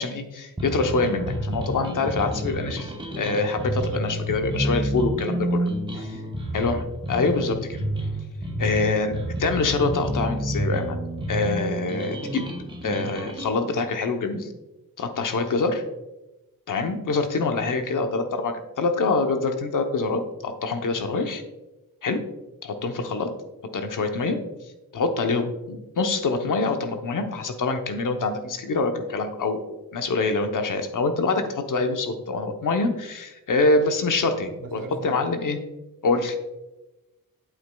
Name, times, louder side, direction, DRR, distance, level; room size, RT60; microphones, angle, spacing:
voice 1, 0.0-5.7 6.5-7.8 8.6-11.0 11.3-12.5 12.8-14.5 15.0-15.8 16.7-21.4 22.0-22.2 22.6-23.3 23.7-24.4 24.9-29.6 29.9-35.6 36.0-36.4, left 3 dB, 60° left, 6 dB, 0.9 m, -25 dB
sound 1, 0.6-13.5, right 1 dB, 15° right, 1.0 m, -29 dB
voice 2, 5.9-6.4 34.6-35.2, right 2 dB, 65° right, 6 dB, 1.0 m, -41 dB
8.6 x 8.0 x 2.3 m, 1.0 s
wide cardioid pair, 125°, 36 cm